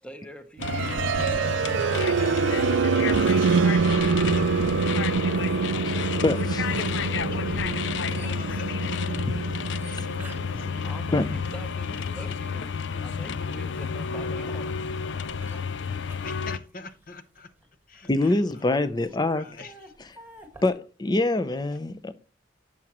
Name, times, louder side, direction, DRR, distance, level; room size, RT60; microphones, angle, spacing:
voice 1, 0.0-2.7 10.8-15.0 18.2-18.3, equal, 5° left, 1.0 m, -45 dB
sound 1, 0.6-16.6, left 6 dB, 70° left, 0.4 m, -30 dB
sound 2, 0.6-12.5, right 6 dB, 80° right, 0.4 m, -26 dB
sound 3, 0.8-12.5 13.1-20.7, right 1 dB, 10° right, 1.6 m, -48 dB
voice 2, 2.2-2.5 3.6-4.4 6.1-9.2 9.8-10.9 16.2-17.5 17.9-18.3 18.6-19.1 19.3-19.9, left 3 dB, 50° left, 0.9 m, -45 dB
voice 3, 6.2-7.0 9.2-9.3 9.8-10.1 11.1-11.4 18.1-19.5 20.0-20.1 20.6-22.1, left 2 dB, 20° left, 0.5 m, -25 dB
11.0 x 7.3 x 3.0 m
head